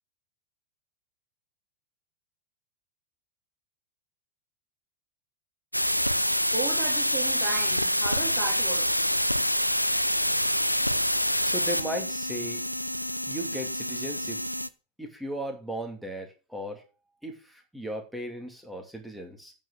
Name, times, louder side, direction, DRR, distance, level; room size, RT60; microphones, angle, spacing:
sound 1, 5.7-14.7, equal, 90° left, 0.5 m, -26 dB
voice 1, 6.5-9.0, right 5 dB, 25° right, 2.7 m, -36 dB
voice 2, 11.4-12.6 13.3-14.4 15.0-16.8 17.2-19.5, equal, 5° right, 2.5 m, -36 dB
9.0 x 5.5 x 6.5 m
figure-of-eight pair, 90°, 0 cm